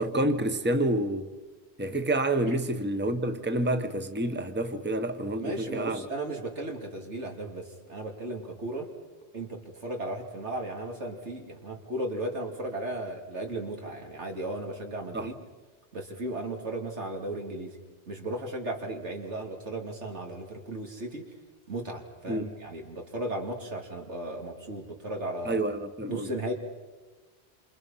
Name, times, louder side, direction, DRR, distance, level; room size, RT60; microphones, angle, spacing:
voice 1, 0.0-1.3 1.8-6.0 15.1-15.3 22.3-22.5 25.4-26.3, right 1 dB, 10° right, 1.1 m, -28 dB
voice 2, 5.4-8.9 9.3-15.4 15.9-17.8 18.1-21.3 21.7-25.6 26.1-26.5, right 1 dB, 85° right, 3.2 m, -35 dB
28.0 x 27.0 x 5.7 m
omnidirectional pair, 1.2 m